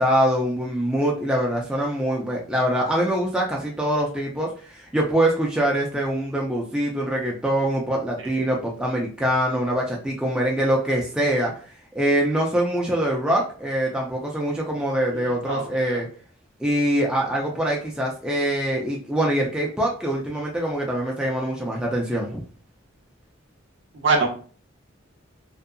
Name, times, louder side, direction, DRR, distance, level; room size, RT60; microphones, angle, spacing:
voice 1, 0.0-11.5 12.0-16.1 16.6-22.4, right 1 dB, 5° right, -2 dB, 0.4 m, -24 dB
voice 2, 15.2-15.6 15.9-16.0 23.9-24.3, right 3 dB, 60° right, 2 dB, 0.6 m, -23 dB
2.7 x 2.5 x 2.3 m, 0.41 s
head